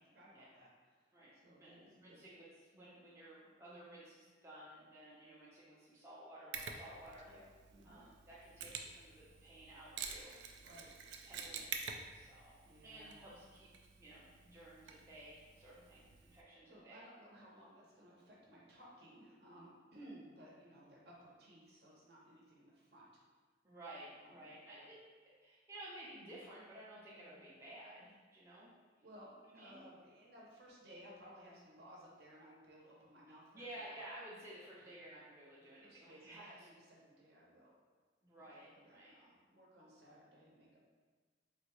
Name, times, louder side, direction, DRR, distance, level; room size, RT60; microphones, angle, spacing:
voice 1, 0.1-2.3 7.2-7.4 7.7-8.0 10.6-10.9 12.6-13.1 16.7-23.1 24.2-24.9 29.0-34.0 34.8-34.9 35.8-37.7 38.4-40.8, equal, 60° right, -4 dB, 0.8 m, -59 dB
voice 2, 1.1-2.5 2.7-7.3 7.8-10.3 11.2-17.0 23.6-25.0 25.4-28.7 29.5-29.8 33.5-36.7 38.2-39.1, right 1 dB, 15° right, -8 dB, 0.5 m, -54 dB
Mechanisms, 6.5-16.4, right 6 dB, 75° right, 0.3 m, -49 dB
3.8 x 2.2 x 3.0 m, 1.4 s
head